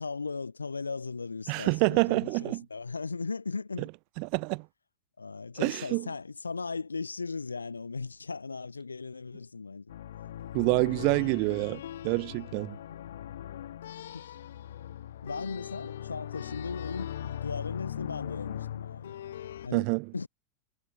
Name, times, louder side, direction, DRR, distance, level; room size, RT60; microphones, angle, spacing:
voice 1, 0.0-3.9 5.2-9.9 10.6-10.9 12.9-13.0 14.1-14.3 15.2-19.1 19.6-19.9 20.1-20.3, left 4 dB, 75° left, 3.3 m, -37 dB
voice 2, 1.5-2.6 4.2-4.6 5.6-6.1 10.5-12.8 19.7-20.1, right 37 dB, 45° right, 0.6 m, -27 dB
sound 1, 9.9-19.7, left 11 dB, 60° left, 2.7 m, -40 dB
figure-of-eight pair, 90°, 0 cm